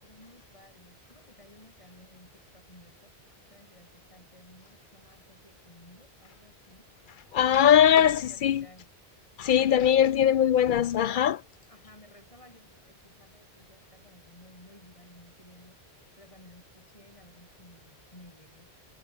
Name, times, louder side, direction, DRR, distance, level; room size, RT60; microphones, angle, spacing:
voice 1, 0.0-6.9 7.6-8.9 9.6-9.9 11.7-15.8 16.2-18.7, left 1 dB, 30° left, 5.8 m, -56 dB
voice 2, 7.3-8.6 9.4-11.4, left 9 dB, 60° left, 0.6 m, -21 dB
omnidirectional pair, 1.1 m